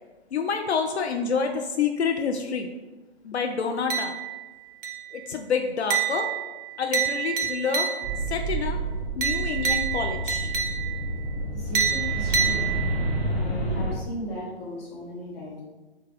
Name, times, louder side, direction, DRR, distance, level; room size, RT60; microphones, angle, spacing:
voice 1, 0.3-2.7 3.2-4.1 5.1-6.3 6.8-7.9 8.3-8.8 9.2-10.5, left 5 dB, 75° left, 4 dB, 0.5 m, -27 dB
sound 1, 3.9-4.5 4.8-5.2 5.9-8.3 9.2-11.1 11.7-13.2, right 7 dB, 50° right, 0.7 m, -28 dB
sound 2, 8.0-13.9, right 1 dB, 5° right, 0.4 m, -29 dB
voice 2, 11.5-12.7 13.3-15.6, equal, 20° left, -5 dB, 1.3 m, -37 dB
6.1 x 2.2 x 3.3 m, 1.2 s
figure-of-eight pair, 135°, 33 cm